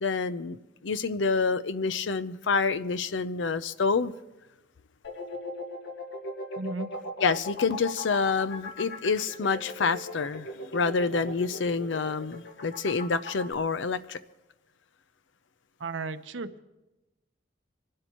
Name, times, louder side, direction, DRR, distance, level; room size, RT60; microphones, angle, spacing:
voice 1, 0.0-4.1 7.2-14.2, left 4 dB, 80° left, 0.6 m, -28 dB
sound 1, 5.0-13.5, left 2 dB, 65° left, 1.9 m, -38 dB
voice 2, 6.6-6.9 15.8-16.6, right 3 dB, 85° right, 0.9 m, -34 dB
26.0 x 12.0 x 3.0 m
head